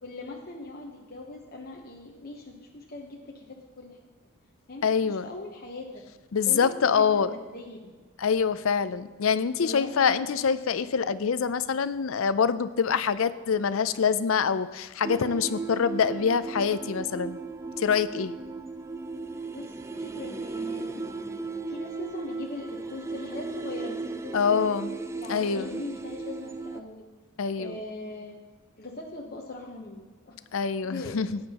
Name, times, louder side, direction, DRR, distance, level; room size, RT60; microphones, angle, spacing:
voice 1, 0.0-4.0 4.7-6.0 6.5-7.9 9.6-10.3 19.5-21.1 21.6-24.6 25.1-27.1 27.6-28.4 28.8-30.4 30.8-31.2, left 2 dB, 45° left, -2 dB, 1.0 m, -40 dB
voice 2, 4.8-5.3 6.3-7.3 8.2-17.4 17.8-18.3 24.3-24.9 25.3-25.7 27.4-27.8 30.5-31.4, left 6 dB, 70° left, 14 dB, 0.5 m, -25 dB
sound 1, 15.0-26.8, right 3 dB, 15° right, 0.3 m, -36 dB
17.0 x 9.5 x 2.9 m, 1.3 s
head